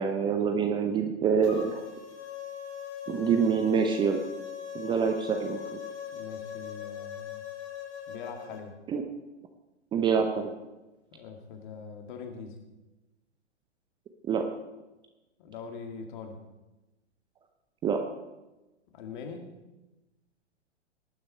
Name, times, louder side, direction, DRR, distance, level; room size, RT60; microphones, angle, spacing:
voice 1, 0.0-1.8 3.1-4.2 4.7-5.6 8.9-9.0 9.9-10.5 14.3-14.4 17.8-18.0, right 6 dB, 15° right, 5 dB, 0.7 m, -26 dB
sound 1, 1.4-8.6, left 9 dB, 70° left, 5.8 m, -40 dB
voice 2, 6.1-7.4 8.1-8.8 11.1-12.6 15.4-16.4 18.9-19.5, left 5 dB, 45° left, 4 dB, 2.2 m, -42 dB
18.5 x 9.8 x 4.4 m, 1.1 s
figure-of-eight pair, 115°, 35 cm